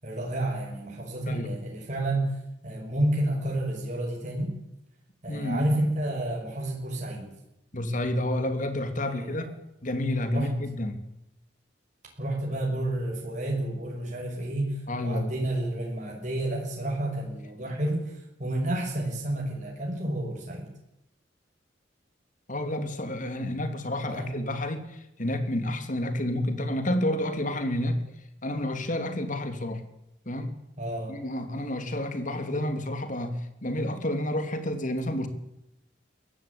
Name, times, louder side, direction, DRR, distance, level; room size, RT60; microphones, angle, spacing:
voice 1, 0.0-4.5 5.2-7.3 9.0-9.5 10.3-10.5 12.2-20.7 24.1-24.5 30.8-31.2, right 1 dB, 45° right, -1 dB, 6.5 m, -30 dB
voice 2, 1.3-1.6 5.3-5.7 7.7-11.0 14.9-15.3 22.5-28.0 28.4-29.8 30.2-30.5 31.1-35.3, left 1 dB, 45° left, 8 dB, 3.1 m, -30 dB
22.5 x 17.0 x 8.7 m, 0.84 s
head